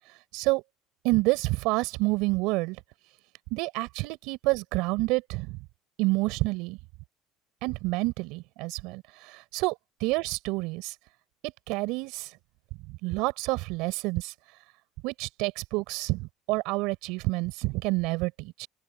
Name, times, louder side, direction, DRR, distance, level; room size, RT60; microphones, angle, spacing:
voice 1, 1.0-2.8 3.5-5.6 6.0-6.8 7.6-9.7 10.0-10.9 11.4-12.3 12.9-14.3 15.0-18.7, right 23 dB, 75° right, 6.8 m, -28 dB
open air
cardioid pair, 135°, 0 cm